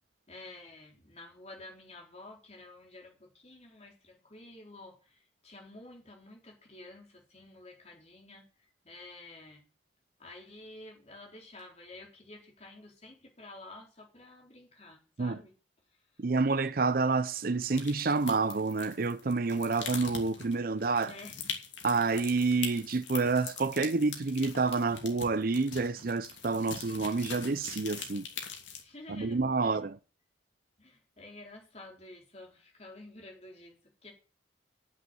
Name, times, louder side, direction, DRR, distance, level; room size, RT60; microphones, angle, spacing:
voice 1, 0.3-9.7 10.2-15.5 15.9-16.0 21.1-21.4 28.8-29.8 30.8-34.1, left 2 dB, 35° left, 4.2 m, -50 dB
voice 2, 16.2-21.1 21.8-28.3 29.1-29.9, right 4 dB, 50° right, 0.6 m, -28 dB
sound 1, 17.7-28.8, left 6 dB, 80° left, 3.0 m, -42 dB
9.4 x 7.7 x 8.1 m
head